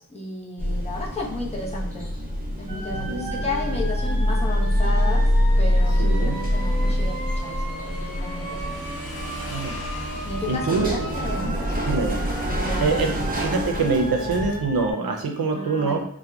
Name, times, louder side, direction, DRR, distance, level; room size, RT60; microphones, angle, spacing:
voice 1, 0.0-2.2 2.6-9.1 10.3-12.0 12.3-13.3 15.5-16.1, left 2 dB, 20° left, -5 dB, 0.6 m, -34 dB
sound 1, 0.6-14.6, equal, 25° right, 0.5 m, -25 dB
sound 2, 2.7-14.9, right 1 dB, 60° right, 0.8 m, -35 dB
voice 2, 2.9-3.4 6.0-6.4 9.5-9.8 10.5-11.1 11.4-12.1 12.8-16.0, right 4 dB, 85° right, 2 dB, 0.5 m, -25 dB
Motorcycle / Engine, 4.2-11.2, left 1 dB, 85° left, 0.7 m, -41 dB
2.7 x 2.1 x 2.2 m, 0.69 s
wide cardioid pair, 45°, 35 cm